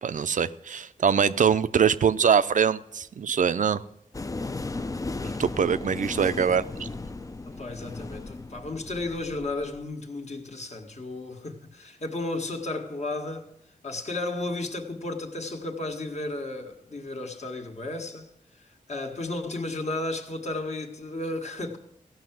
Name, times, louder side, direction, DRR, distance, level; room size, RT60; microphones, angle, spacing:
voice 1, 0.0-3.8 5.4-6.9, right 7 dB, 60° right, 0.5 m, -23 dB
sound 1, 4.1-9.8, left 3 dB, 25° left, 0.5 m, -36 dB
voice 2, 7.4-13.5 13.8-18.3 18.6-21.8, left 2 dB, 50° left, 1.6 m, -33 dB
15.0 x 5.9 x 7.6 m
cardioid pair, 75°, 15 cm